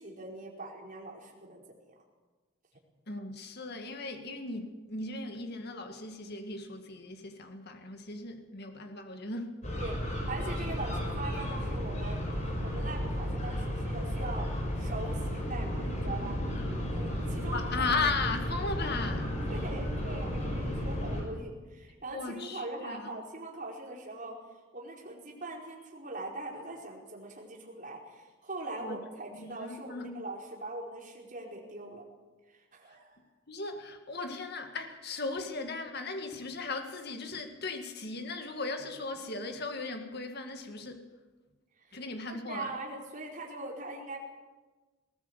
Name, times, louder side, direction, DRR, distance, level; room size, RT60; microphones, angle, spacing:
voice 1, 0.0-2.0 9.8-12.3 12.6-14.5 14.7-16.4 16.9-17.6 19.5-24.4 24.7-32.0 32.5-33.2 41.8-42.0 42.3-44.2, right 2 dB, 40° right, 4.8 m, -42 dB
voice 2, 3.1-9.6 17.5-19.4 22.1-23.2 28.8-29.0 29.4-30.2 33.5-41.0 41.9-42.7, left 3 dB, 50° left, 2.0 m, -37 dB
sound 1, 9.6-21.2, equal, 35° left, 5.9 m, -33 dB
20.0 x 18.5 x 8.3 m
head